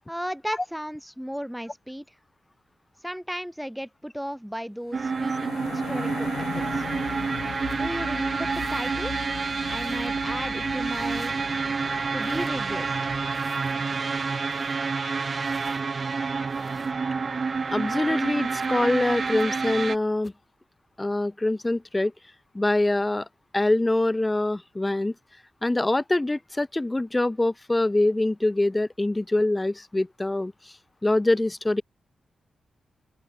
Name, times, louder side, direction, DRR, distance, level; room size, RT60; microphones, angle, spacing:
voice 1, 0.1-2.0 3.0-6.9 7.7-9.1 9.7-11.3 12.1-13.1, equal, ahead, 3.4 m, -35 dB
sound 1, 4.9-14.2, left 10 dB, 85° left, 1.3 m, -40 dB
sound 2, 4.9-20.0, right 4 dB, 50° right, 0.9 m, -28 dB
sound 3, 7.7-7.9 8.5-8.9 9.6-10.1 10.9-11.4 12.2-12.5 13.3-13.8 14.4-14.8 15.4-15.8 16.5-16.9 18.6-18.7 19.4-19.5 20.2-20.4, left 3 dB, 40° left, 4.5 m, -51 dB
voice 2, 17.7-20.3 21.0-22.1 22.5-23.2 23.5-25.1 25.6-30.5 31.0-31.8, left 2 dB, 20° left, 1.1 m, -24 dB
open air
supercardioid pair, 50°, 0 cm